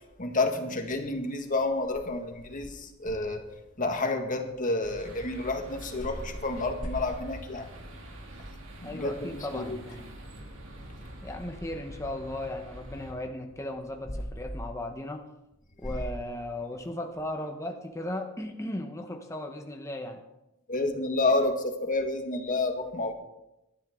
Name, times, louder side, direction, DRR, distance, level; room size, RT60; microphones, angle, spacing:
voice 1, 0.2-3.5 3.8-7.7 8.8-9.8 20.7-23.1, left 2 dB, 40° left, 5 dB, 1.8 m, -29 dB
sound 1, 4.8-13.1, right 1 dB, 65° right, 2.8 m, -45 dB
voice 2, 8.8-10.0 11.2-15.3 15.8-20.2, left 1 dB, 15° left, 4 dB, 1.0 m, -36 dB
19.5 x 13.0 x 3.8 m, 0.90 s
head